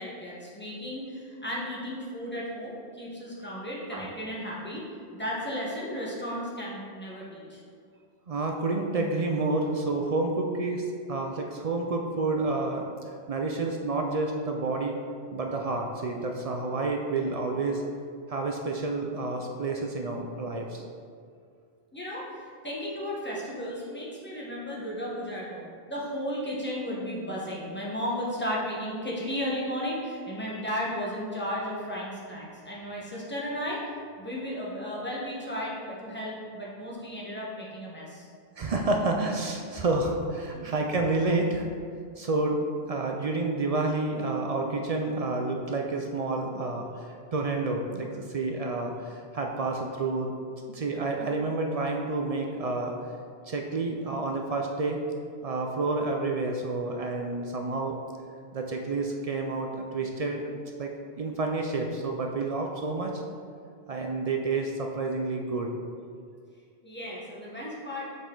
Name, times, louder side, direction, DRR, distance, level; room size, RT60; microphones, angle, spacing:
voice 1, 0.0-4.8 5.1-7.6 21.9-38.3 40.5-40.7 66.8-68.0, equal, 10° left, -6 dB, 1.2 m, -34 dB
voice 2, 8.3-15.0 15.3-17.8 18.3-20.8 24.7-24.8 38.6-41.7 42.2-50.3 50.7-53.0 53.5-55.0 55.4-58.0 58.5-60.9 61.2-63.2 63.9-65.8, right 3 dB, 50° right, 2 dB, 0.4 m, -29 dB
7.1 x 4.2 x 3.8 m, 2.2 s
omnidirectional pair, 1.1 m